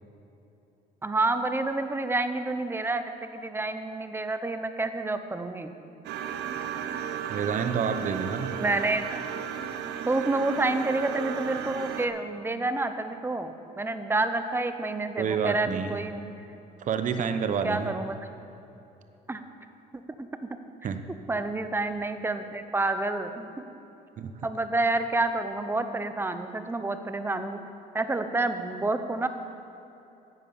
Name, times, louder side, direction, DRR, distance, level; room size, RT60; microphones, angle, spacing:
voice 1, 1.0-5.7 8.6-9.2 10.1-16.2 17.6-18.1 19.3-19.4 19.9-20.5 21.3-23.6 24.4-27.6 27.9-29.3, right 2 dB, 15° right, 9 dB, 0.7 m, -29 dB
sound 1, 6.0-12.1, right 8 dB, 80° right, 0.8 m, -34 dB
voice 2, 7.3-8.6 15.2-16.0 16.8-17.9 20.8-21.0 24.2-24.3, right 6 dB, 50° right, 8 dB, 0.9 m, -28 dB
10.0 x 9.2 x 7.1 m, 2.9 s
cardioid pair, 110°, 17 cm